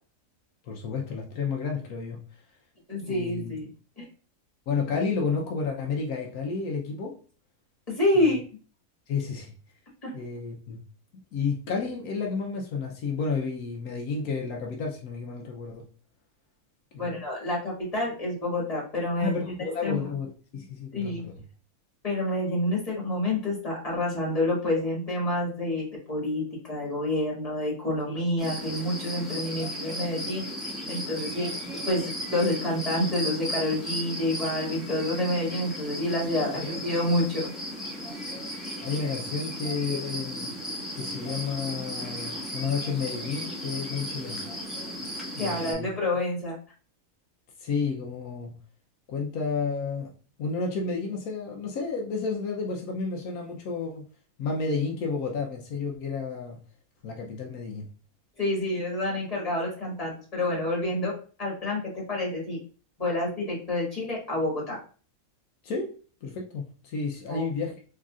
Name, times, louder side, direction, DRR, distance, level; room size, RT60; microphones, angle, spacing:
voice 1, 0.6-2.2 3.0-3.5 4.7-7.2 8.1-8.4 9.1-9.5 10.1-10.8 11.3-15.8 16.9-17.2 19.2-21.4 36.6-36.7 38.8-40.5 40.9-44.4 45.3-45.9 47.6-48.5 49.1-50.1 50.4-54.1 54.4-56.6 57.0-57.9 65.6-65.9 66.2-67.8, left 4 dB, 80° left, 0 dB, 1.1 m, -31 dB
voice 2, 2.9-3.7 4.0-4.1 7.9-8.4 10.0-10.1 17.0-19.3 19.8-20.1 20.9-21.2 22.0-26.4 26.7-30.4 30.9-31.5 31.8-37.5 45.4-46.5 58.4-61.1 61.4-62.6 63.0-64.8 67.3-67.5, left 1 dB, 25° left, -4 dB, 1.7 m, -28 dB
sound 1, 28.4-45.7, equal, ahead, 1.0 m, -35 dB
3.8 x 3.2 x 2.3 m, 0.39 s
omnidirectional pair, 1.5 m